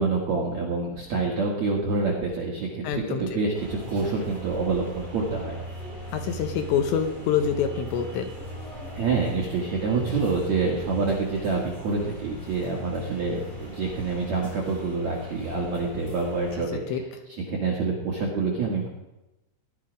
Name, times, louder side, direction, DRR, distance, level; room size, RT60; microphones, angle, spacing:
voice 1, 0.0-5.6 8.9-17.0 17.5-18.9, right 4 dB, 65° right, -2 dB, 1.7 m, -27 dB
voice 2, 2.8-3.4 6.1-8.3 16.9-17.0, left 7 dB, 75° left, 6 dB, 2.9 m, -26 dB
sound 1, 3.5-16.5, equal, 20° left, 6.0 m, -39 dB
18.0 x 11.0 x 5.0 m, 1.0 s
omnidirectional pair, 5.7 m